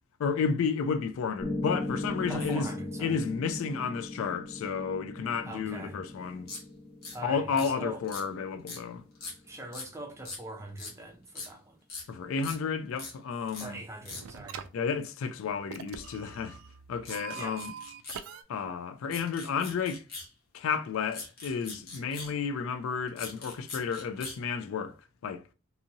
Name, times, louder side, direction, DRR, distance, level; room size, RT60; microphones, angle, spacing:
voice 1, 0.2-2.7 3.0-6.5 7.2-9.0 12.1-13.8 14.7-16.6 16.9-17.7 18.5-20.0 20.5-24.9 25.2-25.4, left 6 dB, 75° left, 0.3 m, -32 dB
Piano, 1.4-9.5, left 2 dB, 25° left, 0.7 m, -39 dB
voice 2, 2.3-3.2 5.4-6.0 7.1-8.0 9.4-11.8 13.6-14.7 17.3-17.6, right 1 dB, 15° right, 0.5 m, -42 dB
sound 1, 6.5-6.6 7.0-7.2 7.6-7.7 8.0-8.2 8.7-8.8 9.2-9.4 9.7-9.9 10.3-10.4 10.8-10.9 11.4-11.5 11.9-12.0 12.4-12.6 13.0-13.1 13.5-13.7 14.1-14.2 17.1-18.2 19.1-20.3 21.1-22.3 23.1-24.4, left 3 dB, 45° left, 0.9 m, -41 dB
sound 2, 13.3-13.8 14.1-14.7 15.7-18.4, right 7 dB, 80° right, 0.3 m, -44 dB
2.7 x 2.6 x 2.7 m
head